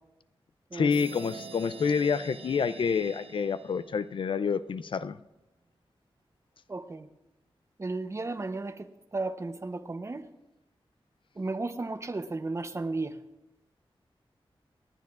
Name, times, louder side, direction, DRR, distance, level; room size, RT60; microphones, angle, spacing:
voice 1, 0.7-5.2, left 6 dB, 60° left, 14 dB, 0.4 m, -28 dB
sound 1, 0.9-4.5, right 5 dB, 85° right, 0.7 m, -46 dB
voice 2, 6.7-7.1 7.8-8.9 9.1-10.2 11.4-13.1, right 3 dB, 30° right, 9 dB, 0.7 m, -34 dB
28.5 x 9.5 x 2.4 m, 0.96 s
wide cardioid pair, 140°, 9 cm